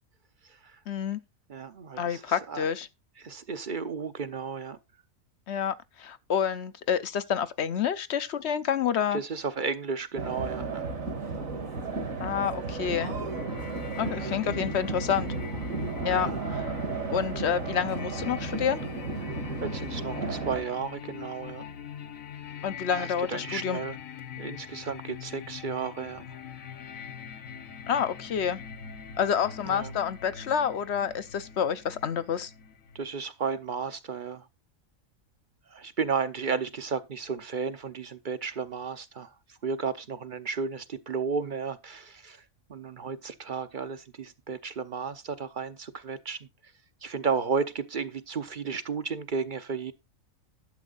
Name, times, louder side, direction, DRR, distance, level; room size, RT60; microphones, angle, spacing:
voice 1, 0.9-1.2 2.0-2.9 5.5-9.2 12.2-13.1 14.0-15.3 16.0-16.7 17.1-18.8 22.6-23.8 27.9-28.6 29.2-32.5, left 8 dB, 60° left, 0.9 m, -28 dB
voice 2, 1.5-2.2 2.5-2.7 3.2-4.8 9.1-10.8 14.0-14.4 16.1-16.4 19.6-21.7 22.9-24.0 24.4-26.4 29.7-29.9 32.9-34.5 35.7-39.3 39.6-42.4 42.7-46.4 47.0-49.9, right 5 dB, 45° right, 0.8 m, -33 dB
sound 1, 10.2-20.6, right 3 dB, 70° right, 2.3 m, -33 dB
sound 2, 13.3-33.0, left 7 dB, 75° left, 1.5 m, -43 dB
11.5 x 7.3 x 3.9 m
omnidirectional pair, 1.4 m